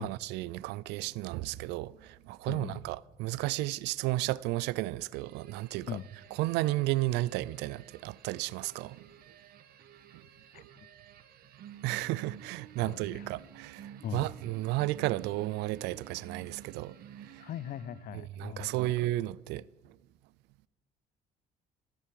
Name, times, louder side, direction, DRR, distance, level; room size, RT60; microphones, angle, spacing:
voice 1, 0.0-6.0 6.3-9.1 11.8-17.4 18.1-19.6, right 18 dB, 90° right, 0.4 m, -33 dB
voice 2, 2.5-2.8 5.9-6.1 10.5-10.6 12.8-13.2 14.0-14.3 17.4-18.9, left 10 dB, 55° left, 0.5 m, -40 dB
sound 1, 5.1-18.3, right 9 dB, 65° right, 1.3 m, -52 dB
14.0 x 8.3 x 7.5 m
cardioid pair, 110°, 17 cm